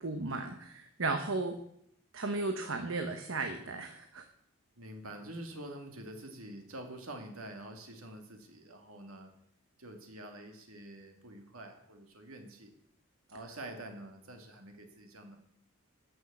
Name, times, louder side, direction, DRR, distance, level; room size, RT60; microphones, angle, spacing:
voice 1, 0.0-1.6 2.1-4.2, right 3 dB, 70° right, 6 dB, 1.0 m, -35 dB
voice 2, 4.8-9.3 9.8-12.7 13.3-15.4, right 1 dB, 90° right, 4 dB, 2.2 m, -47 dB
12.5 x 6.4 x 8.0 m, 0.73 s
head